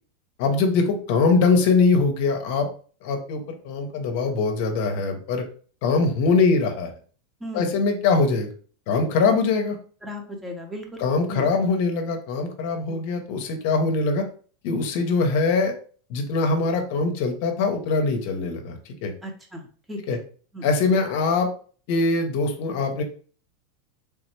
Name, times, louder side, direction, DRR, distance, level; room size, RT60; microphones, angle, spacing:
voice 1, 0.4-2.7 3.0-5.4 5.8-6.9 7.5-8.5 8.9-9.8 11.0-14.2 14.6-15.7 16.1-19.1 20.1-20.2 20.6-21.5 21.9-23.0, left 4 dB, 60° left, 5 dB, 0.6 m, -22 dB
voice 2, 7.4-7.7 10.0-11.0 11.3-11.5 12.9-13.0 19.2-20.2 20.5-20.6, equal, 10° right, 2 dB, 0.7 m, -35 dB
3.3 x 2.0 x 3.1 m, 0.43 s
hypercardioid pair, 110°, 0 cm